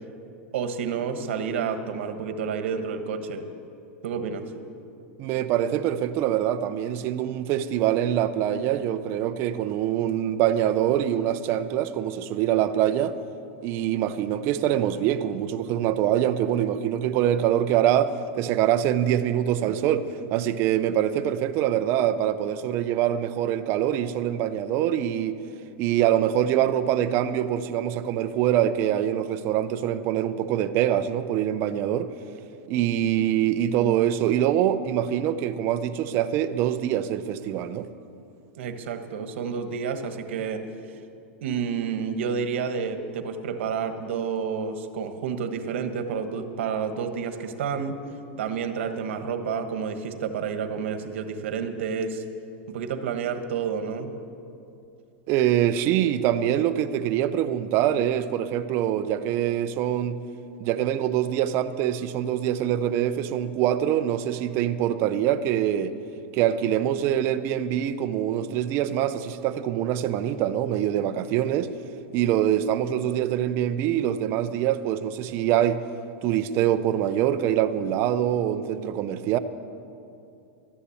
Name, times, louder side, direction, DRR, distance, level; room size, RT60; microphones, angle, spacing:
voice 1, 0.5-3.5 4.0-4.4 32.7-32.9 38.6-40.6 41.4-48.0 48.4-52.2 52.7-54.1, right 6 dB, 75° right, 8 dB, 1.4 m, -30 dB
voice 2, 5.2-13.2 13.6-25.4 25.8-32.1 32.7-37.9 55.3-60.2 60.6-66.0 66.3-71.7 72.1-75.8 76.2-79.4, right 11 dB, 40° right, 10 dB, 0.6 m, -24 dB
13.0 x 10.0 x 8.5 m, 2.6 s
supercardioid pair, 155°, 7 cm